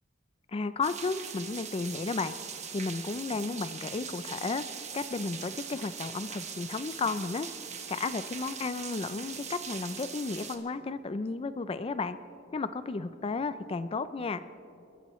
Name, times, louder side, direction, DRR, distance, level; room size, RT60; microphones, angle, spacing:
voice 1, 0.5-2.3 2.7-4.6 4.9-7.5 7.9-12.2 12.5-14.4, left 4 dB, 30° left, 13 dB, 0.4 m, -33 dB
sound 1, 0.8-10.6, right 7 dB, 40° right, 1.3 m, -41 dB
28.0 x 14.0 x 3.1 m, 2.7 s
head